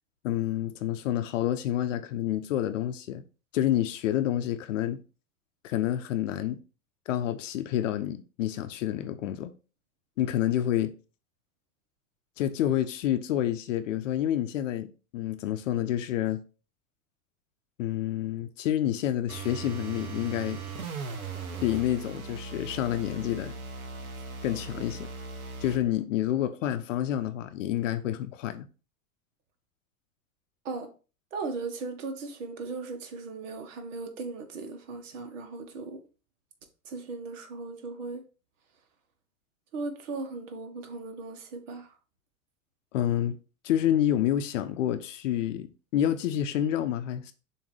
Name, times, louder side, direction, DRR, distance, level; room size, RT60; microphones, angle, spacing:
voice 1, 0.2-3.2 3.5-5.0 5.6-6.6 7.1-9.5 10.2-10.9 12.4-16.4 17.8-20.6 21.6-23.6 24.4-25.1 25.6-28.7 42.9-43.4 43.6-47.3, left 11 dB, 60° left, 0.7 m, -28 dB
sound 1, 19.3-25.8, right 3 dB, 85° right, 0.9 m, -39 dB
voice 2, 31.3-36.0 36.8-38.2 39.7-41.9, right 3 dB, 60° right, 1.4 m, -37 dB
6.9 x 2.9 x 4.7 m
figure-of-eight pair, 90°, 42 cm